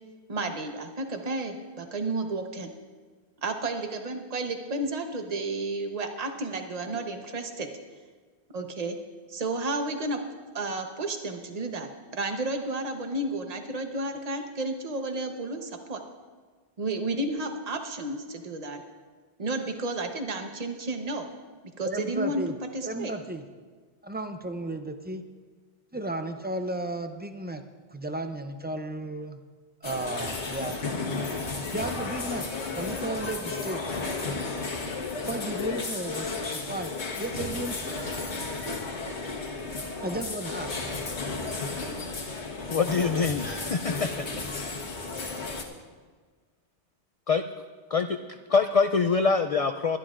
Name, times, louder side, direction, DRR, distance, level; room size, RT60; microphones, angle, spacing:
voice 1, 0.3-2.7 3.4-7.7 8.5-9.0 9.3-10.2 10.5-16.0 16.8-18.8 19.4-21.3 21.8-22.4 22.7-23.1, right 2 dB, 35° right, 5 dB, 1.0 m, -32 dB
voice 2, 21.8-22.5 22.8-23.4 24.0-25.2 25.9-27.6 27.9-29.4 29.8-30.8 31.7-32.5 32.8-33.8 35.3-36.9 37.2-38.0 40.0-40.8, right 1 dB, 15° right, 7 dB, 0.3 m, -34 dB
sound 1, 29.8-45.6, left 3 dB, 80° left, 1.6 m, -33 dB
voice 3, 42.7-44.1 44.5-44.7 45.0-45.1 47.3-47.4 47.9-48.1 48.5-50.0, left 5 dB, 65° left, 8 dB, 0.3 m, -24 dB
22.0 x 11.5 x 2.5 m, 1.5 s
omnidirectional pair, 1.1 m